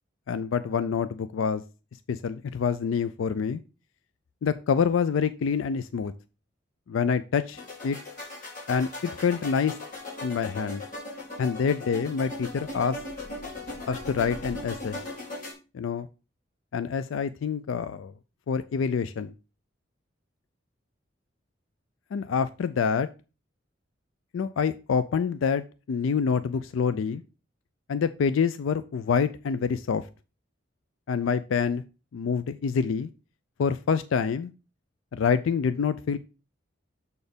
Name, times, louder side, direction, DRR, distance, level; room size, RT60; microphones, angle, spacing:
voice 1, 0.3-1.6 2.1-3.6 4.4-6.1 6.9-8.0 8.7-9.8 10.2-10.8 11.4-13.0 13.9-15.0 15.7-16.1 16.7-18.1 18.5-19.3 22.1-23.1 24.3-27.2 27.9-30.0 31.1-31.8 32.1-33.1 33.6-34.5 35.1-36.2, left 6 dB, 90° left, 14 dB, 0.4 m, -26 dB
sound 1, 7.5-15.5, left 2 dB, 45° left, 2.8 m, -38 dB
6.9 x 4.3 x 5.0 m, 0.32 s
head